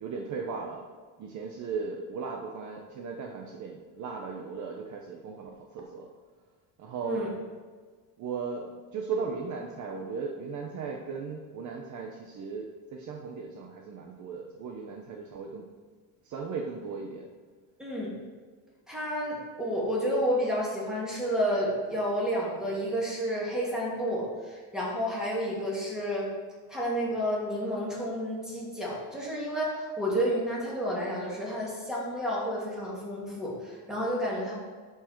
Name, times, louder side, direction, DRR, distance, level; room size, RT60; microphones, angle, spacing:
voice 1, 0.0-0.9 1.2-6.1 6.8-7.4 8.2-15.7 16.3-17.3, right 5 dB, 45° right, 2 dB, 0.8 m, -37 dB
voice 2, 17.8-18.1 18.9-26.3 26.7-34.5, equal, ahead, -6 dB, 2.5 m, -30 dB
11.0 x 4.8 x 4.5 m, 1.5 s
cardioid pair, 140°, 40 cm